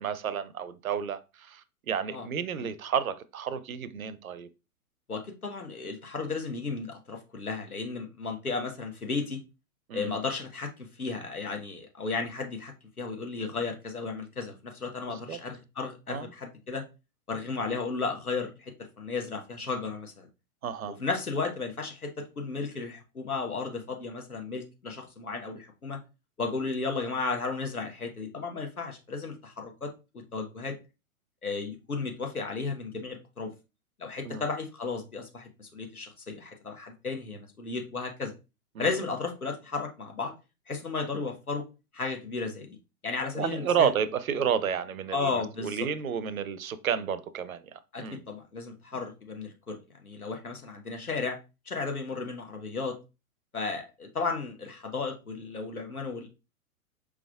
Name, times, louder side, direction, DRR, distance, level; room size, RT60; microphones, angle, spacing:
voice 1, 0.0-4.5 9.9-10.2 15.1-15.4 16.1-16.3 20.6-21.0 34.2-34.5 38.7-38.9 43.3-48.2, right 7 dB, 70° right, 0.6 m, -31 dB
voice 2, 5.1-9.4 9.9-16.8 17.3-18.7 19.0-20.3 21.0-26.0 26.4-30.8 31.4-33.5 34.0-38.3 38.8-40.3 40.7-41.6 41.9-42.8 43.0-43.9 45.1-45.9 47.9-51.4 51.7-53.0 53.5-56.3, left 4 dB, 85° left, 1.2 m, -34 dB
4.9 x 3.5 x 2.3 m
figure-of-eight pair, 105°, 43 cm